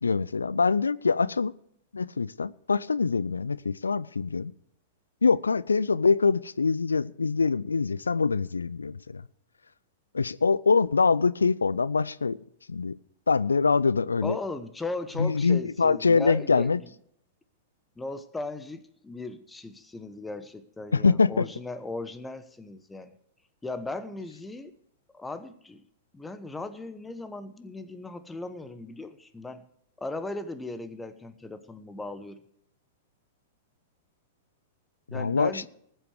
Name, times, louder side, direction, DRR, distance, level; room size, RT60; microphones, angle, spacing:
voice 1, 0.0-1.5 1.9-4.5 5.2-9.2 10.1-12.4 12.7-13.0 13.3-14.4 15.2-16.8 20.9-21.5 35.1-35.7, left 4 dB, 75° left, 19 dB, 0.4 m, -24 dB
voice 2, 14.2-16.9 18.0-23.1 23.6-24.7 25.1-25.8 26.1-29.6 30.0-32.4 35.1-35.7, left 2 dB, 10° left, 12 dB, 1.0 m, -37 dB
19.5 x 8.0 x 4.7 m, 0.71 s
figure-of-eight pair, 100°, 0 cm